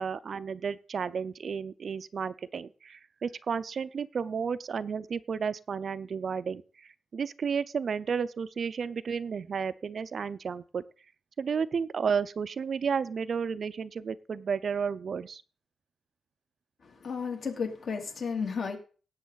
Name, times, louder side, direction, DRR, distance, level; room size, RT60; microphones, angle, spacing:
voice 1, 0.0-10.8 11.4-15.4, right 6 dB, 50° right, 15 dB, 0.4 m, -32 dB
voice 2, 16.8-18.8, left 5 dB, 55° left, 3 dB, 2.5 m, -33 dB
17.5 x 7.8 x 3.9 m, 0.39 s
wide cardioid pair, 135°, 0 cm